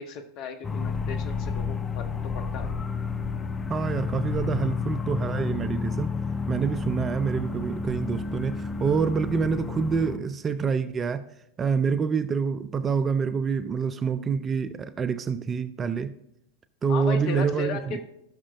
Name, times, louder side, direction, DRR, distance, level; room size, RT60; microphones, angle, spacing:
voice 1, 0.0-2.7 16.9-18.1, left 5 dB, 40° left, 6 dB, 1.0 m, -36 dB
sound 1, 0.6-10.2, left 5 dB, 15° left, 0.7 m, -31 dB
voice 2, 3.7-6.1 6.5-11.3 11.6-16.1 16.8-18.0, right 5 dB, 20° right, 12 dB, 0.4 m, -27 dB
16.5 x 6.1 x 2.5 m, 0.81 s
figure-of-eight pair, 90°, 0 cm